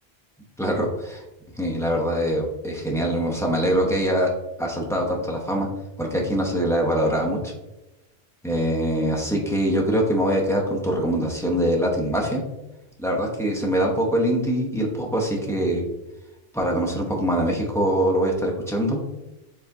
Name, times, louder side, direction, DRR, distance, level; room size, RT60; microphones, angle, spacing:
voice 1, 0.6-1.2 1.6-4.3 4.6-5.7 6.0-7.5 8.4-12.4 13.0-15.9 16.5-19.0, equal, 5° left, -2 dB, 0.5 m, -23 dB
4.9 x 3.4 x 2.7 m, 0.98 s
omnidirectional pair, 1.0 m